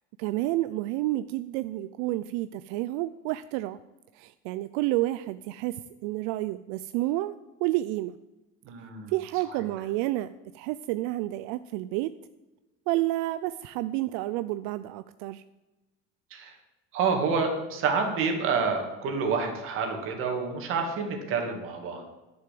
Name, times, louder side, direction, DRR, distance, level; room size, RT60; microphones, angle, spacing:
voice 1, 0.2-3.8 4.2-5.8 6.0-7.3 7.6-8.2 9.1-12.1 12.9-15.4, right 17 dB, 80° right, 13 dB, 0.5 m, -30 dB
voice 2, 8.6-9.1 9.5-9.7 16.3-16.6 16.9-22.0, right 5 dB, 45° right, 4 dB, 2.3 m, -28 dB
11.0 x 7.0 x 7.6 m, 1.1 s
cardioid pair, 175°, 29 cm